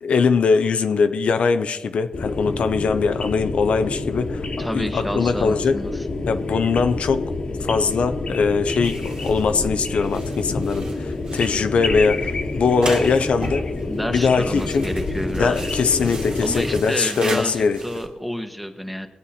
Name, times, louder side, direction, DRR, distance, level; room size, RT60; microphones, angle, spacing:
voice 1, 0.0-5.8 6.3-7.3 7.6-13.7 14.1-14.9 15.4-17.8, left 5 dB, 75° left, 9 dB, 0.6 m, -21 dB
sound 1, 2.1-16.8, left 2 dB, 55° left, 1.4 m, -28 dB
voice 2, 4.6-6.0 13.8-15.7 16.4-19.1, equal, ahead, 7 dB, 1.1 m, -29 dB
sound 2, 8.8-18.1, right 2 dB, 45° right, 2.2 m, -36 dB
19.5 x 8.1 x 4.3 m, 1.2 s
cardioid pair, 75°, 2 cm